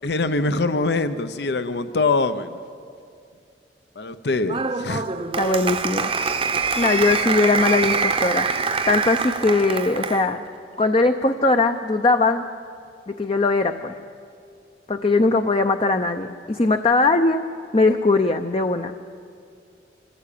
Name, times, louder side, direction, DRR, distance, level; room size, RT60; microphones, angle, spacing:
voice 1, 0.0-2.6 4.0-5.1, left 3 dB, 65° left, 12 dB, 0.8 m, -23 dB
Applause, 4.5-10.3, right 5 dB, 30° right, 0.8 m, -24 dB
voice 2, 5.4-6.1 6.8-8.5 8.9-10.4 10.8-12.4 13.1-13.9 14.9-17.5 17.7-18.9, left 3 dB, 30° left, 6 dB, 0.6 m, -20 dB
26.0 x 15.0 x 8.5 m, 2.3 s
head